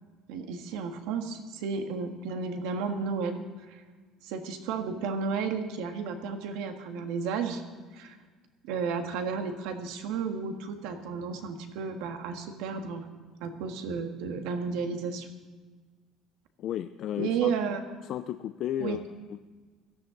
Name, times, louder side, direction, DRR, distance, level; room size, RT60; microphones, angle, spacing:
voice 1, 0.3-3.8 4.2-7.6 7.9-8.2 8.6-13.1 13.4-15.3 17.2-17.8 18.8-19.0, right 5 dB, 80° right, 5 dB, 1.6 m, -33 dB
voice 2, 16.6-17.5 18.0-19.0 19.3-19.4, left 11 dB, 50° left, 11 dB, 0.4 m, -33 dB
17.5 x 13.0 x 3.9 m, 1.4 s
cardioid pair, 150°, 0 cm